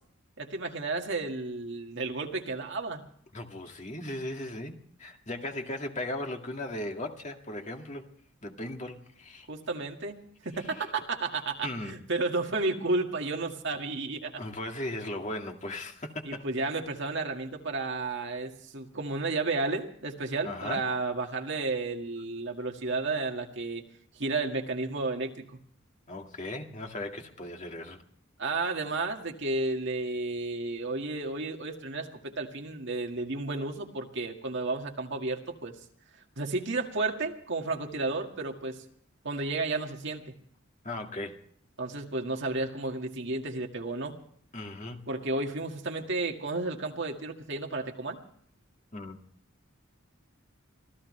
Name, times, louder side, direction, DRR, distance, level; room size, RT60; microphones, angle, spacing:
voice 1, 0.4-3.0 9.5-14.4 16.2-23.8 24.2-25.5 28.4-35.7 36.4-38.8 39.2-40.3 41.8-44.2 45.1-48.2, right 3 dB, 60° right, 2 dB, 1.9 m, -32 dB
voice 2, 3.3-8.1 8.4-9.5 11.6-12.0 14.4-16.4 20.4-20.8 26.1-28.0 40.8-41.4 44.5-45.0 48.9-49.2, left 1 dB, 35° left, 3 dB, 2.1 m, -37 dB
25.5 x 16.0 x 3.3 m, 0.62 s
head